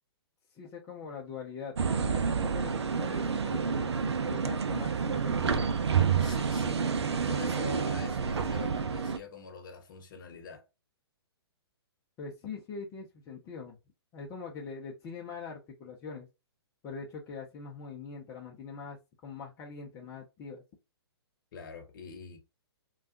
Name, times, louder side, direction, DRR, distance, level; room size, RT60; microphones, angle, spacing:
voice 1, 0.5-5.8 12.2-13.8 14.1-16.3 16.8-20.6, left 5 dB, 20° left, 0.5 m, -43 dB
sound 1, 1.8-9.2, right 6 dB, 75° right, 0.5 m, -29 dB
voice 2, 6.2-6.8 7.1-10.6 21.5-22.4, left 5 dB, 50° left, 0.9 m, -44 dB
3.3 x 2.3 x 2.7 m
figure-of-eight pair, 125°, 14 cm